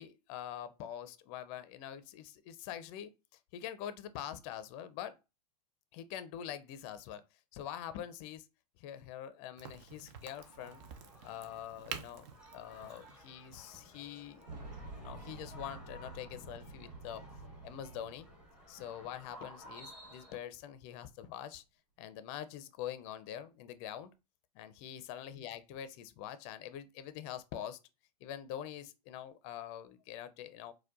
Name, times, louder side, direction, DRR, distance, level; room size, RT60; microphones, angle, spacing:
voice 1, 0.0-3.1 3.5-5.2 5.9-7.2 7.5-8.5 8.8-10.8 11.2-12.2 12.5-14.4 15.0-17.2 17.6-18.3 18.7-21.6 22.0-24.1 24.5-27.8 28.2-30.7, left 10 dB, 40° left, 0.5 m, -44 dB
Crack, 9.6-15.0, right 7 dB, 45° right, 0.6 m, -49 dB
sound 1, 10.2-20.4, equal, 5° right, 0.9 m, -56 dB
Boom, 14.5-19.2 19.5-19.6 20.7-20.8, right 2 dB, 80° right, 1.2 m, -49 dB
4.4 x 2.2 x 2.4 m
hypercardioid pair, 105°, 21 cm